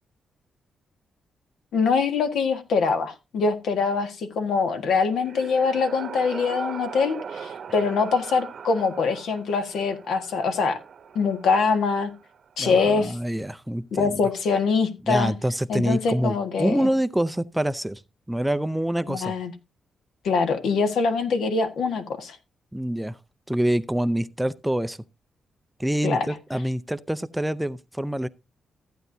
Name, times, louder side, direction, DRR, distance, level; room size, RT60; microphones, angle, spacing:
voice 1, 1.7-10.8 11.1-12.1 12.6-13.2 13.9-15.3 15.7-16.8 19.1-19.5 20.2-22.4 26.0-26.3, left 5 dB, 80° left, 1.6 m, -24 dB
sound 1, 4.7-12.6, right 7 dB, 60° right, 1.0 m, -40 dB
voice 2, 12.6-14.2 15.1-18.0 18.3-19.3 22.7-23.2 23.5-25.0 25.8-28.3, right 1 dB, 5° right, 0.5 m, -26 dB
14.0 x 9.0 x 2.7 m
cardioid pair, 105°, 0 cm